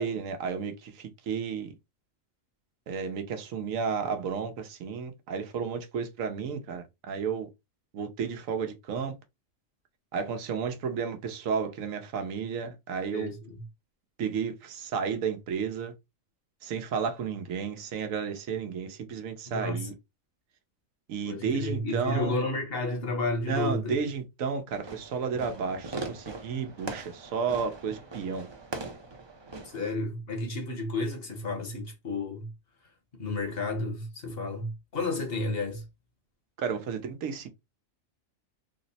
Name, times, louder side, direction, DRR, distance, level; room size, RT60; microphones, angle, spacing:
voice 1, 0.0-1.7 2.9-7.5 7.9-9.1 10.1-13.3 14.2-15.9 16.6-19.9 21.1-22.4 23.5-28.5 36.6-37.5, right 6 dB, 85° right, 1.1 m, -32 dB
voice 2, 13.1-13.6 19.5-19.9 21.3-24.0 29.7-32.5 33.1-35.8, left 2 dB, 50° left, 1.1 m, -32 dB
Fireworks, 24.7-29.9, right 3 dB, 35° right, 0.4 m, -41 dB
3.6 x 2.0 x 4.0 m
omnidirectional pair, 1.3 m